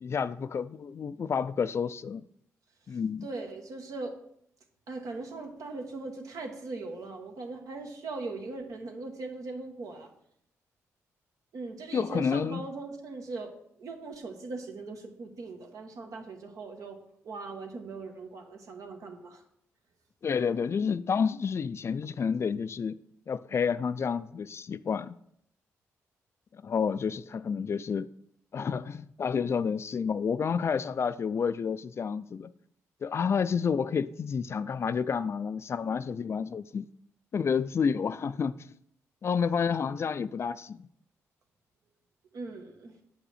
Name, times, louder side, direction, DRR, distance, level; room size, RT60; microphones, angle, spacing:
voice 1, 0.0-2.2 2.9-3.3 11.9-12.6 20.2-23.0 23.3-25.2 26.5-28.1 28.5-32.5 33.0-36.9 37.3-38.7 39.2-40.9, left 6 dB, 50° left, 0.3 m, -30 dB
voice 2, 3.2-4.2 4.9-10.1 11.5-17.0 17.2-19.4 42.3-42.9, right 3 dB, 70° right, 1.4 m, -40 dB
7.3 x 5.5 x 4.2 m
supercardioid pair, 60°, 6 cm